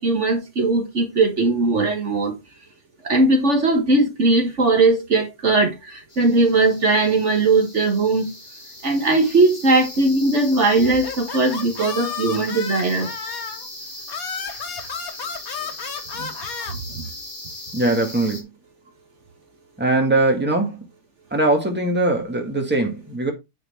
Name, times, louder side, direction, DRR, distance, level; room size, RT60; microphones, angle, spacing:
voice 1, 0.0-2.3 3.0-8.3 8.8-13.1 16.2-16.3, right 2 dB, 55° right, 1.8 m, -19 dB
sound 1, 6.1-18.4, left 1 dB, 20° left, 2.1 m, -38 dB
sound 2, 10.8-13.7 14.1-16.7, left 6 dB, 80° left, 1.7 m, -32 dB
voice 2, 17.7-18.5 19.8-20.8 21.3-23.3, right 2 dB, 5° right, 1.8 m, -21 dB
9.4 x 4.5 x 4.3 m
omnidirectional pair, 1.5 m